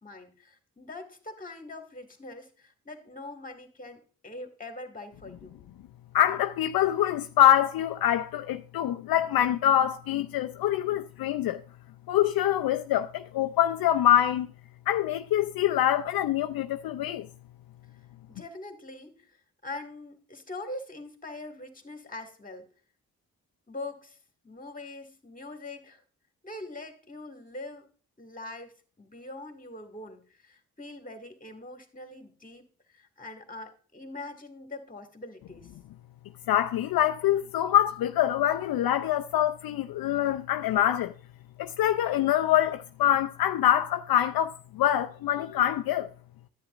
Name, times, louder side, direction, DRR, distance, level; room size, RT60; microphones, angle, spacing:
voice 1, 0.0-5.6 18.3-19.4 19.6-22.7 23.7-24.2 24.4-26.0 26.4-27.9 28.2-32.6 32.9-35.7, left 2 dB, 20° left, 2.0 m, -43 dB
voice 2, 6.1-11.6 12.1-14.5 14.9-17.3 36.5-41.1 41.6-46.1, left 11 dB, 70° left, 0.5 m, -25 dB
10.5 x 8.6 x 2.5 m
supercardioid pair, 50°, 37 cm